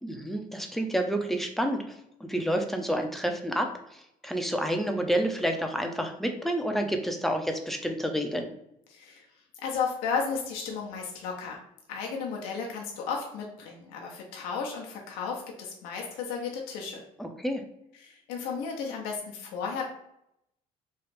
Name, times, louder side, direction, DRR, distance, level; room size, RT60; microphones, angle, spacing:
voice 1, 0.0-8.5 17.2-17.6, equal, ahead, 4 dB, 0.5 m, -29 dB
voice 2, 8.9-9.3 9.6-11.6 11.9-17.0 18.0-19.9, left 5 dB, 85° left, 0 dB, 0.6 m, -34 dB
3.1 x 2.4 x 3.1 m, 0.79 s
supercardioid pair, 75°, 15 cm